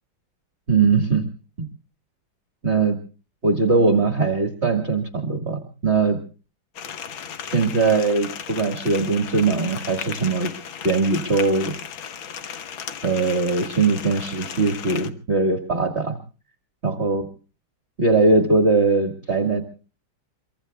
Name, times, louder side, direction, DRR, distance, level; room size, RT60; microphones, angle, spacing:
voice 1, 0.7-1.3 1.6-1.7 2.6-3.0 3.4-6.2 7.5-10.5 10.8-11.7 13.0-16.2 16.8-17.3 18.0-19.6, right 3 dB, 30° right, 4 dB, 2.1 m, -20 dB
sound 1, 6.7-15.1, left 8 dB, 75° left, 2.0 m, -35 dB
25.0 x 24.0 x 2.3 m, 0.37 s
omnidirectional pair, 2.2 m